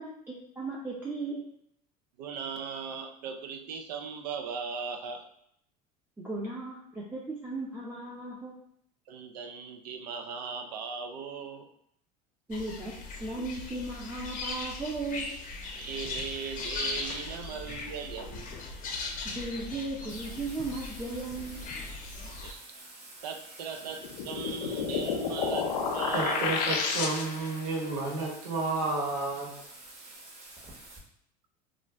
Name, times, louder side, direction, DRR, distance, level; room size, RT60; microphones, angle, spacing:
voice 1, 0.0-1.4 6.2-8.5 12.5-12.9 13.2-15.3 19.3-21.7, right 2 dB, 10° right, -6 dB, 0.5 m, -36 dB
voice 2, 2.2-5.2 9.1-11.7 15.7-18.6 22.2-22.6 23.2-26.7, right 6 dB, 85° right, 4 dB, 0.4 m, -38 dB
sound 1, 12.5-22.5, left 3 dB, 45° left, 0.6 m, -39 dB
Bathtub (filling or washing), 20.1-31.0, right 2 dB, 30° right, 1.0 m, -49 dB
sound 2, 24.0-27.6, left 5 dB, 90° left, 0.5 m, -30 dB
voice 3, 26.1-29.5, right 3 dB, 60° right, -4 dB, 1.2 m, -31 dB
2.5 x 2.1 x 3.3 m, 0.70 s
supercardioid pair, 100°, 20 cm